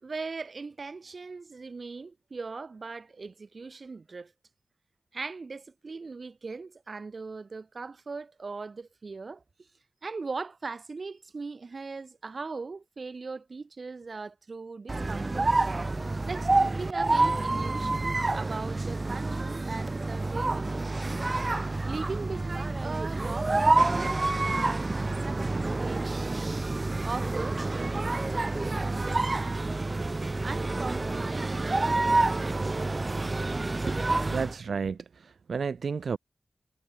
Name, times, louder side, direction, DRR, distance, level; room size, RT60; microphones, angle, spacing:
voice 1, 0.0-4.3 5.1-9.4 10.0-15.6 16.2-20.9 21.8-26.4 27.0-29.7 30.4-31.7 32.1-32.5 33.9-34.0, right 4 dB, 55° right, 3.6 m, -39 dB
sound 1, 14.9-34.6, right 2 dB, 35° right, 1.8 m, -28 dB
voice 2, 34.3-36.2, right 5 dB, 85° right, 1.8 m, -32 dB
wide cardioid pair, 95°, 0 cm